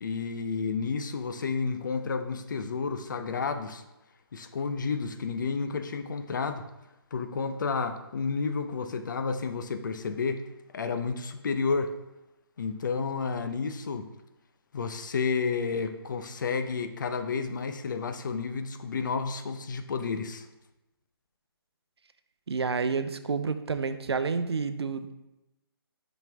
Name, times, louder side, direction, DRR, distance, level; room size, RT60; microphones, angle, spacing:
voice 1, 0.0-3.8 4.3-6.6 7.1-10.4 10.7-11.9 12.6-14.1 14.7-20.5, left 5 dB, 50° left, 9 dB, 0.5 m, -31 dB
voice 2, 22.5-25.3, right 5 dB, 90° right, 10 dB, 0.6 m, -29 dB
6.0 x 5.3 x 3.3 m, 0.97 s
hypercardioid pair, 165°, 13 cm